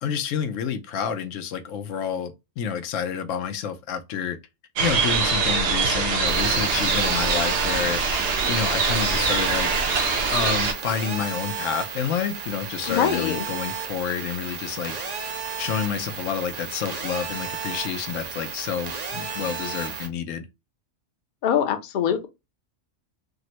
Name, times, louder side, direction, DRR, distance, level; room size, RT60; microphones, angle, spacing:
voice 1, 0.0-4.4 4.8-8.0 8.5-9.7 10.3-14.9 15.6-20.5, left 7 dB, 85° left, 1.0 m, -29 dB
sound 1, 4.8-10.7, right 4 dB, 70° right, 0.9 m, -23 dB
sound 2, 6.3-20.1, right 5 dB, 45° right, 0.6 m, -33 dB
voice 2, 12.9-13.5 21.4-22.3, left 8 dB, 55° left, 0.6 m, -23 dB
3.6 x 2.0 x 2.8 m
omnidirectional pair, 1.3 m